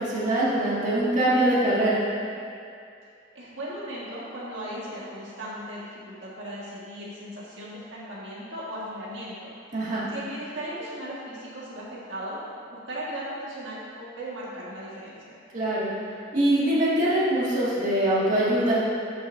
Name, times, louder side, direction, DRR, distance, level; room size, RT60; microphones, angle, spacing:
voice 1, 0.0-2.0 9.7-10.0 15.5-15.9 16.3-18.8, right 1 dB, 40° right, -9 dB, 2.0 m, -23 dB
voice 2, 3.3-9.5 10.1-12.4 12.7-15.3, right 1 dB, 75° right, -7 dB, 1.7 m, -37 dB
13.0 x 6.9 x 2.6 m, 2.4 s
head